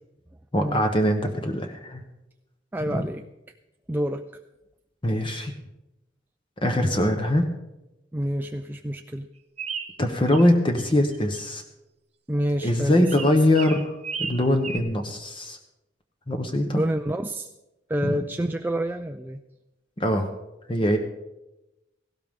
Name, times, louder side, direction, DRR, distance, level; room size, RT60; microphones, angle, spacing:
voice 1, 0.5-2.0 2.9-3.0 5.0-5.5 6.6-7.5 10.0-11.6 12.6-13.9 14.2-15.6 16.3-16.8 18.0-18.2 20.0-20.3 20.7-21.0, left 1 dB, 30° left, 5 dB, 1.1 m, -22 dB
voice 2, 2.7-3.3 3.9-4.2 8.1-9.3 12.3-13.4 16.7-17.5 17.9-19.4, right 1 dB, 10° right, 5 dB, 0.4 m, -28 dB
sound 1, 9.6-10.5 10.8-11.4 13.0-14.8, right 6 dB, 35° right, 0.9 m, -34 dB
17.5 x 16.0 x 3.7 m, 0.97 s
head